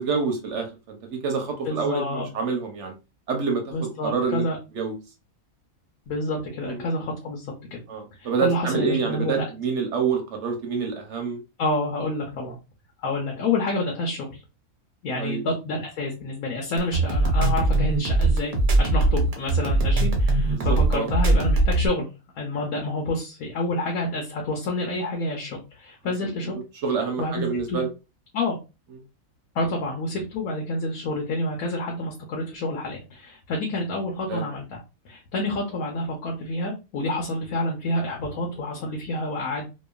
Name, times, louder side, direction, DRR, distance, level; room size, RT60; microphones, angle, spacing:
voice 1, 0.0-2.9 3.3-3.7 4.0-4.5 4.7-4.9 6.6-6.8 7.9-11.4 15.2-15.4 20.5-21.1 26.0-26.3 26.8-27.9 34.3-34.4, right 5 dB, 65° right, 4 dB, 0.9 m, -27 dB
voice 2, 1.6-2.3 3.7-4.6 6.1-7.8 8.2-9.5 11.6-12.6 13.0-14.4 15.0-22.1 22.4-26.5 27.2-27.8 28.3-28.6 29.5-34.8 35.0-39.7, left 2 dB, 90° left, 0 dB, 1.1 m, -28 dB
sound 1, 16.8-21.9, right 2 dB, 45° right, 0.5 m, -20 dB
2.9 x 2.2 x 2.2 m, 0.28 s
omnidirectional pair, 1.4 m